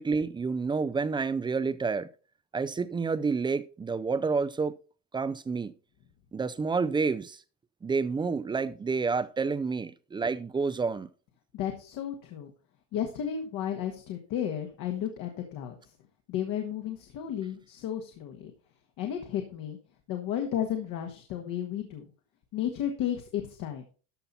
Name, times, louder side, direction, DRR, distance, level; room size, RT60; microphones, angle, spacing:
voice 1, 0.0-2.1 2.5-4.7 5.1-5.7 6.3-7.4 7.8-11.1, right 4 dB, 15° right, 0.5 m, -29 dB
voice 2, 11.5-12.5 12.9-15.7 16.3-18.5 19.0-19.8 20.1-22.0 22.5-23.8, left 10 dB, 60° left, 1.6 m, -33 dB
13.0 x 5.8 x 4.1 m
supercardioid pair, 120°, 37 cm